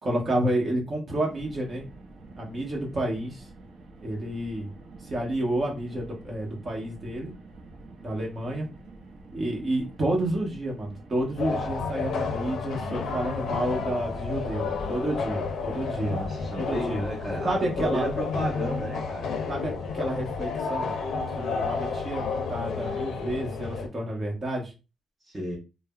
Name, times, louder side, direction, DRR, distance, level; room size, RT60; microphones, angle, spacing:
voice 1, 0.0-1.8 2.4-3.4 4.0-4.7 5.0-7.3 8.0-8.7 9.3-16.2 16.6-17.0 17.4-18.1 19.5-20.9 21.4-24.7, right 1 dB, 35° right, -1 dB, 1.0 m, -30 dB
Car, 1.3-16.4, right 2 dB, 75° right, 0.5 m, -47 dB
sound 1, 11.4-23.9, left 4 dB, 75° left, 0.4 m, -31 dB
voice 2, 16.0-19.3 25.2-25.6, equal, 15° right, -4 dB, 0.6 m, -33 dB
3.2 x 2.0 x 2.2 m, 0.29 s
cardioid pair, 135°, 0 cm